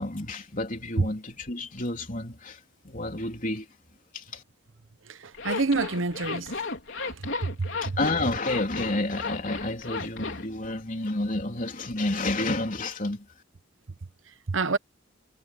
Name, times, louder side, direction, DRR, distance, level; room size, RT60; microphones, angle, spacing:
voice 1, 0.0-3.7 4.1-4.4 7.8-13.3, left 2 dB, 40° left, 3.7 m, -30 dB
voice 2, 5.1-6.5 7.0-7.2 7.6-8.0 14.5-14.8, right 3 dB, 75° right, 1.0 m, -27 dB
Zipper (clothing), 5.3-10.5, left 3 dB, 65° left, 4.2 m, -34 dB
head